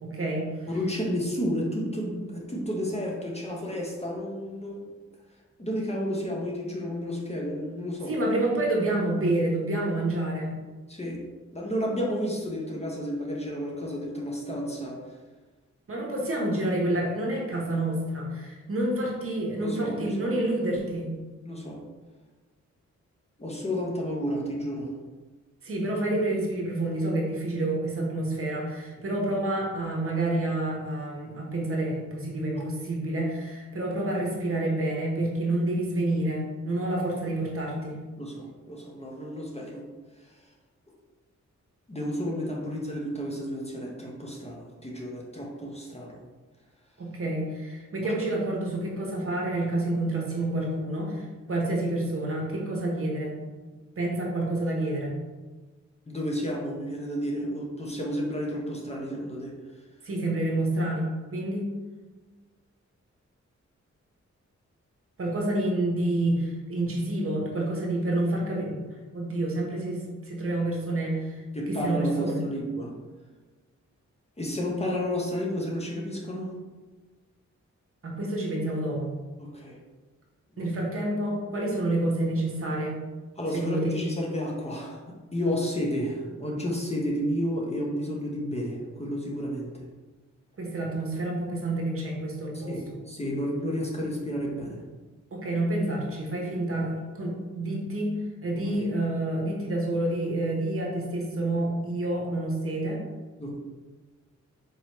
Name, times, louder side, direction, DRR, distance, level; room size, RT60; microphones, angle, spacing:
voice 1, 0.0-0.7 8.1-10.5 15.9-21.1 25.6-38.0 47.0-53.4 54.0-55.1 60.0-61.7 65.2-72.4 78.0-79.1 80.6-83.0 83.5-83.9 90.6-92.7 95.3-98.1 98.4-103.0, right 1 dB, 50° right, -2 dB, 1.0 m, -28 dB
voice 2, 0.7-5.0 5.6-8.1 10.9-11.2 11.5-15.1 19.6-20.5 21.5-21.8 23.4-24.9 32.6-32.7 38.1-39.9 40.2-40.5 41.9-46.2 48.0-48.1 56.1-59.5 71.5-73.0 74.4-76.6 79.4-79.8 80.5-80.7 83.4-89.8 92.5-94.8 98.5-98.6 103.4-103.5, equal, 20° left, -2 dB, 0.8 m, -31 dB
4.6 x 3.0 x 2.9 m, 1.3 s
cardioid pair, 85°, 29 cm